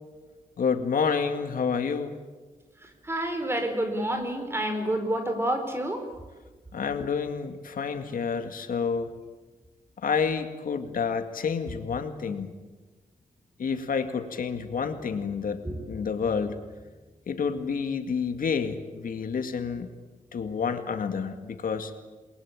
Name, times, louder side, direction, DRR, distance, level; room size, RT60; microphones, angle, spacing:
voice 1, 0.6-2.2 6.7-9.1 10.0-12.5 13.6-16.6 17.3-19.9 20.3-21.9, left 6 dB, 90° left, 7 dB, 2.2 m, -29 dB
voice 2, 2.8-6.1 15.6-15.8, right 1 dB, 15° right, 6 dB, 4.3 m, -29 dB
28.5 x 22.5 x 8.7 m, 1.3 s
wide cardioid pair, 140°, 14 cm